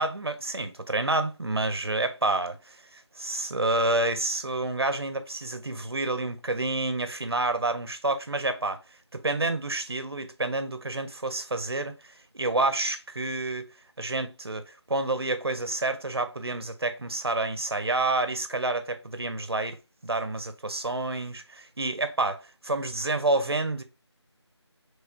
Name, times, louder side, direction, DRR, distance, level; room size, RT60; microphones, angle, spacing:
voice 1, 0.0-8.8 9.1-11.9 12.3-13.7 14.0-19.8 20.0-23.8, right 2 dB, 60° right, 0.5 m, -29 dB
3.2 x 2.7 x 3.3 m
figure-of-eight pair, 180°, 15 cm